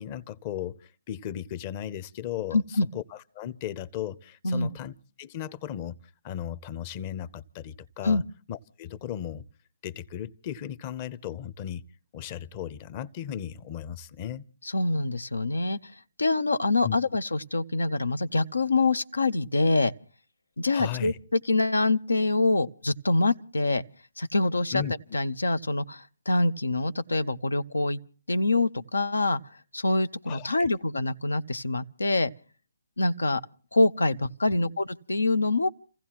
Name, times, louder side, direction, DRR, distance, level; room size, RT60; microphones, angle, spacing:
voice 1, 0.0-6.0 6.2-8.2 8.5-9.4 9.8-11.8 12.1-14.4 16.8-17.0 20.7-21.2 24.7-24.9 30.3-30.7 34.5-34.7, left 10 dB, 30° left, 0.8 m, -36 dB
voice 2, 2.5-2.9 4.4-4.7 8.0-8.2 14.6-19.9 20.6-23.8 24.2-24.8 25.1-28.0 28.3-29.4 29.7-32.3 33.0-33.4 33.7-35.7, left 2 dB, 85° left, 0.7 m, -25 dB
30.0 x 15.5 x 3.0 m
figure-of-eight pair, 140°, 0 cm